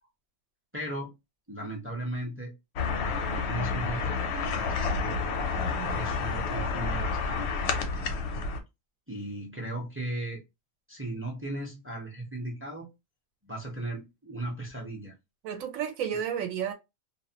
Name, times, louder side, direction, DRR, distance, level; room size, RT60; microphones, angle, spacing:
voice 1, 0.7-1.1 1.5-2.5 3.0-5.1 5.9-8.2 9.1-10.4 10.9-12.9 13.4-15.1, right 1 dB, 15° right, 0.4 m, -37 dB
sound 1, 2.8-8.6, left 4 dB, 65° left, 0.7 m, -30 dB
voice 2, 5.6-6.0 15.4-16.7, right 8 dB, 80° right, 1.0 m, -32 dB
2.5 x 2.1 x 2.7 m
omnidirectional pair, 1.4 m